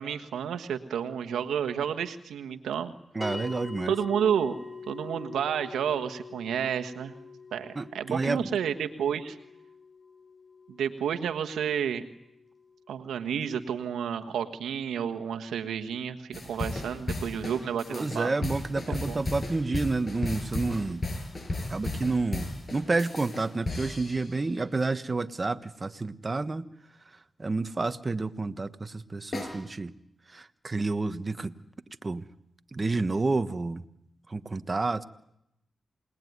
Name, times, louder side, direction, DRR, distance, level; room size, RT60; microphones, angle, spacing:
voice 1, 0.0-2.9 3.9-4.6 4.9-7.1 7.5-9.4 10.7-12.0 12.9-18.3 18.9-19.2, right 8 dB, 90° right, 7 dB, 1.4 m, -30 dB
voice 2, 3.1-3.9 7.7-8.5 17.9-21.0 21.7-26.6 27.4-29.9 30.3-31.5 32.0-32.3 32.7-33.8 34.3-35.0, right 3 dB, 35° right, 11 dB, 1.3 m, -29 dB
sound 1, 3.2-13.8, left 4 dB, 30° left, 7.5 m, -45 dB
sound 2, 16.3-24.5 29.3-29.5, left 2 dB, 45° left, 8.0 m, -34 dB
28.0 x 20.0 x 9.6 m, 0.82 s
cardioid pair, 50°, 0 cm